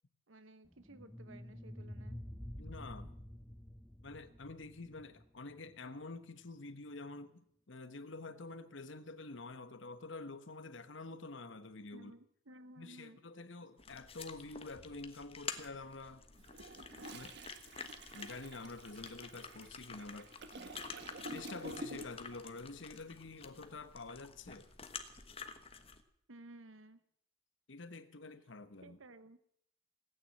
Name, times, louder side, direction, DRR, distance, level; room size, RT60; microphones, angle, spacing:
voice 1, 0.3-2.2 11.9-13.2 26.3-27.0 28.8-29.4, right 2 dB, 80° right, 1.1 m, -56 dB
sound 1, 0.7-5.8, equal, 5° left, 0.7 m, -49 dB
voice 2, 2.6-3.2 4.0-12.1 12.8-16.2 17.1-17.4 18.1-20.4 21.3-24.7 27.7-29.0, left 3 dB, 70° left, 1.2 m, -48 dB
sound 2, 13.8-26.0, left 5 dB, 30° left, 1.2 m, -50 dB
Toilet flush, 16.4-22.3 22.6-22.9, right 2 dB, 55° right, 1.5 m, -49 dB
17.5 x 9.5 x 8.6 m
head